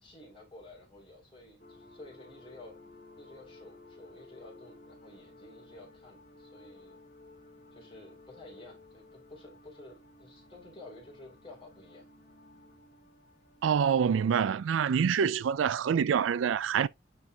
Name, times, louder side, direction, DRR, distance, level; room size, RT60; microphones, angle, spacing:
voice 1, 0.0-2.8 3.2-7.0 7.7-12.1, left 2 dB, 25° left, 3.5 m, -52 dB
sound 1, 1.6-15.2, left 2 dB, 45° left, 2.2 m, -56 dB
voice 2, 13.6-16.9, right 7 dB, 90° right, 0.4 m, -26 dB
9.5 x 4.4 x 2.4 m
head